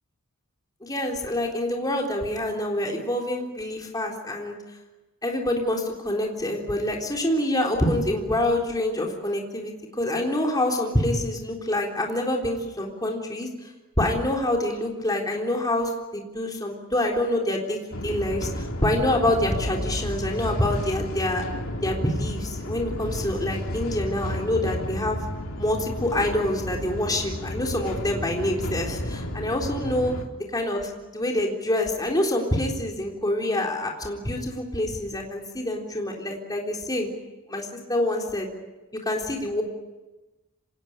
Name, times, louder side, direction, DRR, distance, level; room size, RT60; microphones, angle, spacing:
voice 1, 0.8-4.6 5.2-13.7 14.0-21.4 21.8-25.2 25.6-30.2 30.5-37.1 37.5-38.5 39.1-39.6, left 1 dB, 15° left, 0 dB, 3.8 m, -26 dB
sound 1, 17.9-30.2, equal, 70° left, 3.0 m, -32 dB
26.0 x 19.5 x 9.9 m, 1.1 s
head